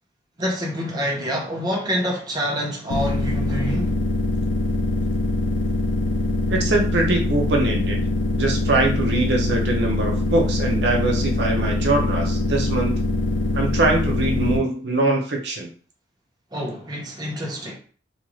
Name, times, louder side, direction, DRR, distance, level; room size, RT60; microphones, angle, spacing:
voice 1, 0.4-3.9 16.5-17.7, equal, 20° right, 0.6 m, -27 dB
sound 1, 2.9-14.6, left 2 dB, 90° left, 0.4 m, -23 dB
voice 2, 6.5-8.0 8.4-12.9 13.5-15.7, right 2 dB, 70° right, 0.6 m, -22 dB
2.5 x 2.3 x 3.0 m
head